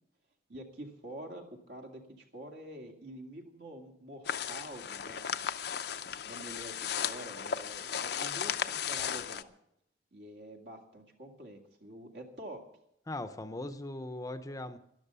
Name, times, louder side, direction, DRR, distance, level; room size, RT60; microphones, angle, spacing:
voice 1, 0.5-5.4 6.2-6.7 7.0-9.5 10.1-12.7, right 1 dB, 70° right, 2 dB, 2.3 m, -47 dB
sound 1, 4.2-9.4, left 8 dB, 65° left, 0.6 m, -35 dB
voice 2, 13.1-14.8, left 1 dB, 20° left, 10 dB, 0.7 m, -39 dB
12.0 x 12.0 x 6.9 m, 0.76 s
head